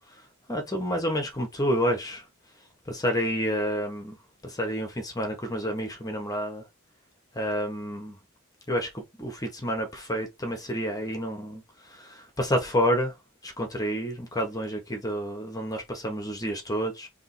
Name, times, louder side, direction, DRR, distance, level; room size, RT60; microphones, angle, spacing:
voice 1, 0.5-2.2 2.9-4.2 4.4-6.6 7.3-8.2 8.7-11.6 11.9-13.1 13.4-17.1, equal, 20° left, 1.2 m, -29 dB
3.6 x 3.0 x 4.3 m
head